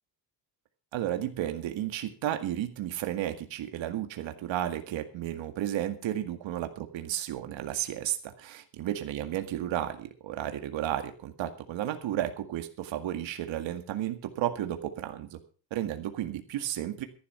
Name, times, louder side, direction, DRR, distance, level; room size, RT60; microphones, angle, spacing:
voice 1, 0.9-15.4 15.7-17.1, right 12 dB, 85° right, 7 dB, 2.0 m, -33 dB
14.0 x 11.5 x 5.6 m, 0.38 s
cardioid pair, 180°, 44 cm